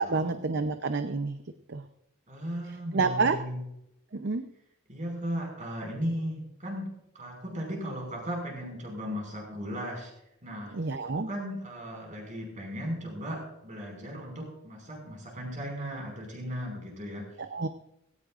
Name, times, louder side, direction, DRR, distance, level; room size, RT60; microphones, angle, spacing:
voice 1, 0.0-1.4 1.7-1.8 2.9-3.4 4.1-4.5 10.7-11.3 17.5-17.7, right 4 dB, 50° right, 9 dB, 0.6 m, -28 dB
voice 2, 2.3-3.6 4.9-10.1 10.4-10.7 11.1-17.3, equal, 35° right, 1 dB, 5.6 m, -36 dB
18.5 x 17.0 x 2.5 m, 0.82 s
head